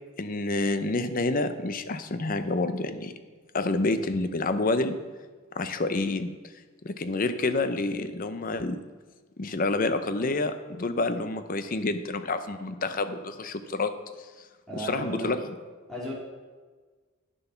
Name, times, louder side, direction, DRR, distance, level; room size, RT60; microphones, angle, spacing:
voice 1, 0.2-3.1 3.5-5.0 5.5-6.3 6.8-8.8 9.4-13.9 14.7-15.4, left 2 dB, 40° left, 10 dB, 0.6 m, -28 dB
voice 2, 14.7-15.3 15.9-16.1, right 1 dB, ahead, -7 dB, 2.8 m, -34 dB
9.3 x 6.9 x 5.7 m, 1.4 s
head